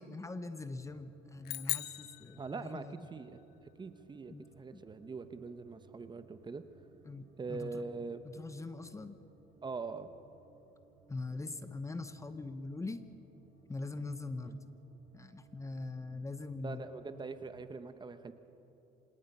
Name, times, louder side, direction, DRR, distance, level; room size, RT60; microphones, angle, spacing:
voice 1, 0.0-3.1 4.3-4.5 4.7-4.8 7.0-7.8 8.2-9.2 11.1-13.0 13.7-14.6 15.1-16.8, left 3 dB, 20° left, 10 dB, 0.9 m, -42 dB
sound 1, 0.5-17.7, right 5 dB, 80° right, 4.4 m, -65 dB
sound 2, 1.4-3.1, left 16 dB, 70° left, 0.6 m, -39 dB
voice 2, 2.4-2.8 3.1-3.4 3.8-6.6 7.4-8.2 9.6-10.1 14.4-14.6 16.6-18.3, right 4 dB, 25° right, 10 dB, 1.0 m, -42 dB
26.5 x 18.0 x 5.5 m, 2.9 s
cardioid pair, 110°, 17 cm